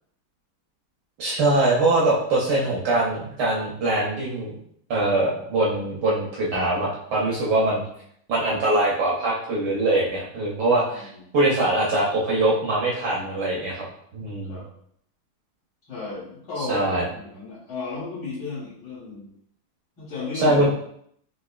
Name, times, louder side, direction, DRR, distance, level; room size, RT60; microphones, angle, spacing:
voice 1, 1.2-4.5 4.9-7.8 8.3-13.9 14.1-14.6 16.6-17.0 20.4-20.7, right 2 dB, 65° right, -4 dB, 1.1 m, -23 dB
voice 2, 10.9-11.2 14.5-14.7 15.9-19.3 20.0-20.7, left 3 dB, 60° left, -10 dB, 1.8 m, -34 dB
3.9 x 2.7 x 2.3 m, 0.68 s
omnidirectional pair, 2.4 m